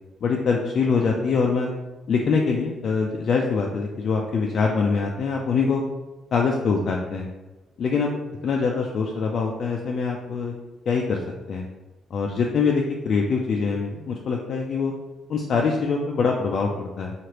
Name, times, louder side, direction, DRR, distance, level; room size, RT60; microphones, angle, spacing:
voice 1, 0.2-1.7 2.1-5.8 6.3-7.3 7.8-8.2 8.4-10.5 10.9-11.2 11.5-11.7 12.1-14.9 15.3-17.1, left 5 dB, 60° left, 0 dB, 0.3 m, -24 dB
3.1 x 2.4 x 2.9 m, 1.1 s
cardioid pair, 90°, 0 cm